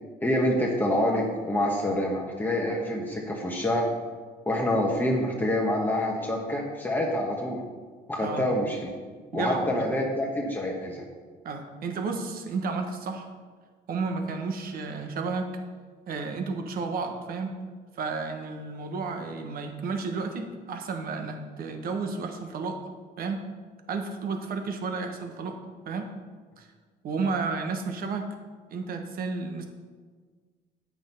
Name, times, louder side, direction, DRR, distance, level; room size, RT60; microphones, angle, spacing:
voice 1, 0.2-3.9 4.5-7.6 8.1-8.8 9.3-11.0, left 1 dB, 10° left, -2 dB, 1.3 m, -26 dB
voice 2, 9.3-9.9 11.4-13.3 13.9-15.5 16.1-17.5 18.0-22.8 23.2-23.4 23.9-25.6 25.8-26.1 26.6-26.7 27.0-28.3 28.7-29.6, right 4 dB, 60° right, 5 dB, 1.3 m, -32 dB
8.7 x 6.1 x 5.5 m, 1.5 s
cardioid pair, 110°, 17 cm